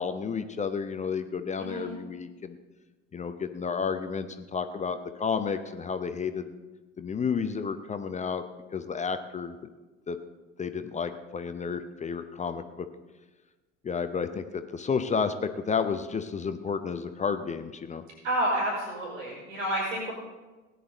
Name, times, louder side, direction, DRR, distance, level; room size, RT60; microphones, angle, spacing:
voice 1, 0.0-2.6 3.1-6.5 7.0-8.4 8.7-9.6 10.1-10.2 10.6-12.9 13.8-18.0, left 6 dB, 20° left, 9 dB, 0.7 m, -31 dB
voice 2, 18.2-20.1, right 1 dB, 70° right, -4 dB, 5.2 m, -29 dB
17.5 x 10.0 x 4.0 m, 1.2 s
figure-of-eight pair, 70°, 39 cm